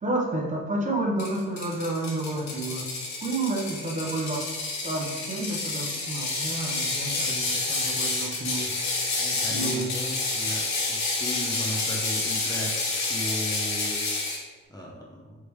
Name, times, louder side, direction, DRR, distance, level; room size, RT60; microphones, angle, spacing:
voice 1, 0.0-2.9 3.2-4.4 4.8-8.8 9.5-9.9, right 2 dB, 25° right, -2 dB, 1.0 m, -30 dB
Ratchet pawl, 1.2-14.4, left 3 dB, 65° left, 1.4 m, -29 dB
voice 2, 9.2-12.8 13.1-14.0 14.7-15.4, equal, 15° left, -3 dB, 0.8 m, -36 dB
4.7 x 3.5 x 3.2 m, 1.3 s
cardioid pair, 90°, 30 cm